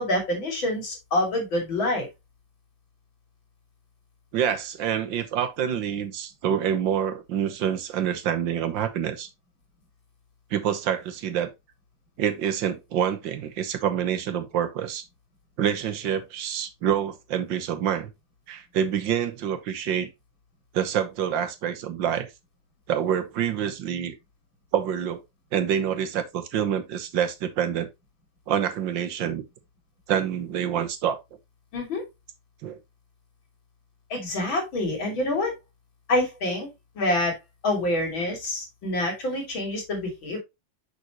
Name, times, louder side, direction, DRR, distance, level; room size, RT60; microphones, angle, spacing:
voice 1, 0.0-2.1 31.7-32.0 34.1-35.5 36.1-36.7 37.0-37.3 37.6-40.4, left 1 dB, 85° left, 3.7 m, -26 dB
voice 2, 4.3-9.3 10.5-11.5 12.2-15.0 15.6-18.1 18.5-20.1 20.7-22.3 22.9-24.2 24.7-25.2 25.5-27.9 28.5-29.4 30.1-31.2 32.6-32.8, right 9 dB, 75° right, 1.7 m, -27 dB
6.7 x 6.4 x 2.9 m
omnidirectional pair, 2.1 m